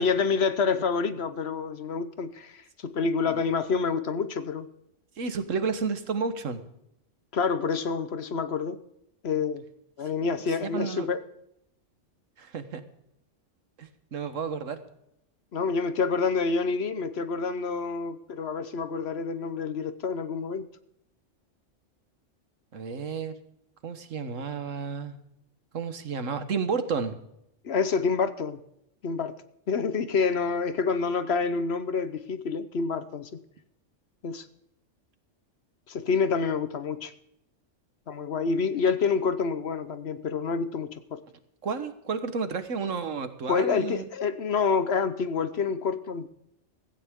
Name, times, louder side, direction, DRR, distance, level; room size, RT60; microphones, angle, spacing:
voice 1, 0.0-4.7 7.3-8.8 9.2-9.6 10.0-11.2 15.5-20.7 27.6-28.6 29.0-29.4 29.7-33.3 34.2-34.5 35.9-37.1 38.1-41.2 43.5-46.3, left 5 dB, 60° left, 12 dB, 1.1 m, -27 dB
voice 2, 5.2-6.6 10.5-11.1 12.4-12.8 13.8-14.8 22.7-23.4 23.8-25.2 25.7-27.1 41.6-44.0, right 5 dB, 85° right, 10 dB, 1.6 m, -31 dB
16.5 x 15.0 x 3.7 m, 0.78 s
omnidirectional pair, 1.3 m